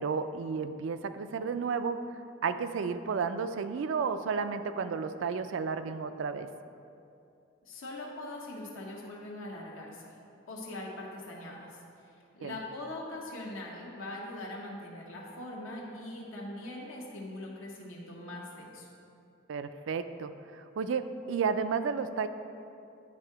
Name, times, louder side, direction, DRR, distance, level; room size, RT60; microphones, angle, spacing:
voice 1, 0.0-2.0 2.4-6.5 12.4-12.6 19.5-22.3, right 5 dB, 70° right, 11 dB, 0.3 m, -32 dB
voice 2, 7.6-10.1 10.5-11.8 12.3-18.9, left 1 dB, 80° left, -3 dB, 0.9 m, -41 dB
9.7 x 3.7 x 4.5 m, 2.6 s
head